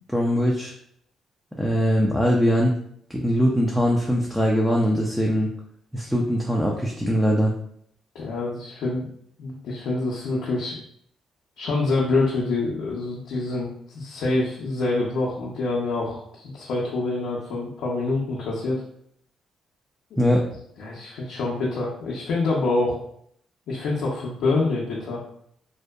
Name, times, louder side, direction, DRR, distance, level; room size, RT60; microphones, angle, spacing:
voice 1, 0.1-0.7 1.6-2.7 3.1-5.5 5.9-7.5 20.2-20.4, equal, ahead, -2 dB, 0.4 m, -21 dB
voice 2, 8.1-9.0 9.4-10.8 11.6-18.8 20.8-23.0 23.7-25.2, left 3 dB, 75° left, -5 dB, 0.5 m, -26 dB
2.6 x 2.1 x 2.2 m, 0.67 s
cardioid pair, 90°, 0 cm